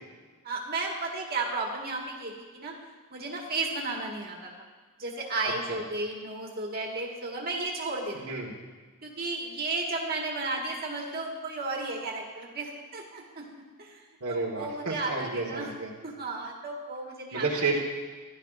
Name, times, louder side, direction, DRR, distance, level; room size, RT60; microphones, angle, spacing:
voice 1, 0.4-2.7 3.1-4.5 5.0-8.2 9.0-13.4 13.8-14.0 14.3-15.7 16.0-17.4, right 3 dB, 45° right, -1 dB, 1.7 m, -33 dB
voice 2, 8.1-8.5 14.2-15.9 17.3-17.9, right 3 dB, 80° right, -1 dB, 1.5 m, -31 dB
14.5 x 11.5 x 2.5 m, 1.4 s
head